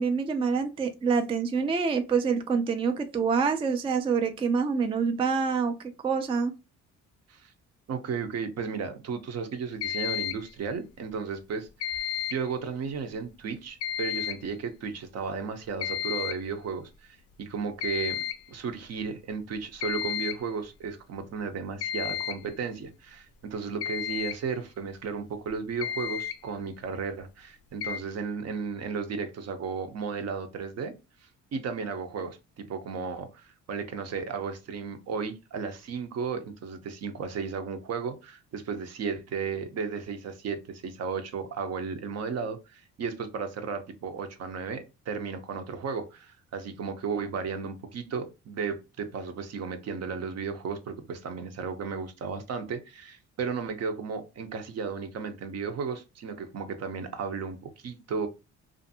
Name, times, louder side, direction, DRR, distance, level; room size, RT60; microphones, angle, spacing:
voice 1, 0.0-5.7 6.0-6.5, right 5 dB, 20° right, 0.3 m, -26 dB
voice 2, 7.9-11.7 11.9-12.0 12.3-30.9 31.5-58.3, right 5 dB, 55° right, 0.6 m, -34 dB
sound 1, 9.8-10.5 11.8-12.5 13.8-14.5 15.8-16.5 17.8-18.5 19.8-20.5 21.8-22.5 23.8-24.4 25.5-25.6 25.8-26.4 27.8-28.0, left 10 dB, 55° left, 0.4 m, -32 dB
2.5 x 2.5 x 2.6 m
cardioid pair, 90°, 30 cm